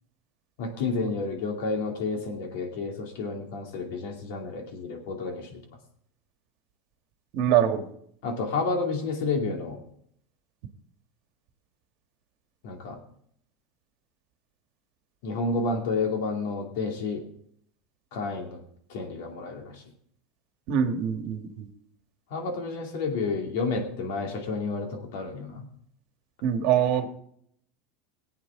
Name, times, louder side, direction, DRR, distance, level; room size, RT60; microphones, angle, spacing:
voice 1, 0.6-5.6 8.2-9.8 12.6-13.0 15.2-17.2 18.1-18.6 18.9-19.8 22.3-25.6, left 3 dB, 70° left, 2 dB, 2.4 m, -30 dB
voice 2, 7.3-7.9 20.7-21.7 26.4-27.1, right 9 dB, 50° right, 7 dB, 1.4 m, -24 dB
19.5 x 8.5 x 3.6 m, 0.69 s
supercardioid pair, 160°, 0 cm